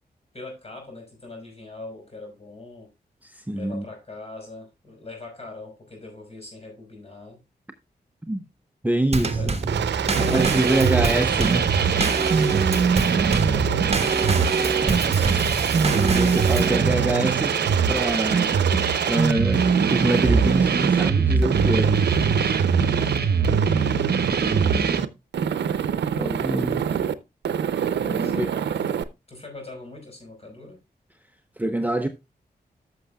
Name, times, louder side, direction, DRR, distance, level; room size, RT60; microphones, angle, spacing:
voice 1, 0.3-2.9 3.5-7.4 8.4-8.5 9.2-9.6 10.0-10.9 13.3-14.2 23.0-23.8 28.1-29.0 29.3-30.8, left 2 dB, 35° left, 5.5 m, -42 dB
voice 2, 3.2-3.8 8.3-8.4 8.8-9.5 10.2-11.7 12.0-12.5 14.8-17.5 17.9-18.6 19.1-21.9 24.3-25.1 26.2-27.0 28.0-28.5 31.6-32.1, right 1 dB, 10° right, 0.7 m, -26 dB
Drum kit / Snare drum / Bass drum, 9.1-16.8, right 3 dB, 35° right, 1.2 m, -26 dB
Aircraft, 9.6-21.1 21.4-23.2 23.4-25.1 25.3-27.1 27.4-29.0, right 8 dB, 90° right, 0.5 m, -26 dB
sound 1, 10.1-25.0, right 5 dB, 65° right, 0.9 m, -23 dB
14.0 x 6.4 x 2.3 m
cardioid pair, 65°, 18 cm